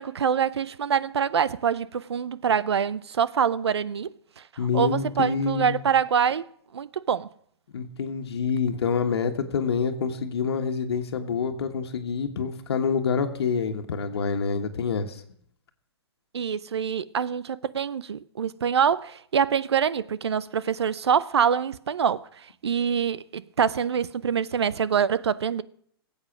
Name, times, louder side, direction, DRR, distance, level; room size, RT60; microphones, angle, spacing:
voice 1, 0.0-4.1 4.4-4.5 4.7-6.4 6.7-7.3 16.3-22.2 22.6-25.6, right 7 dB, 90° right, 0.7 m, -25 dB
voice 2, 4.6-5.9 7.7-15.2, left 5 dB, 75° left, 1.5 m, -27 dB
18.0 x 8.1 x 6.1 m
hypercardioid pair, 135°, 13 cm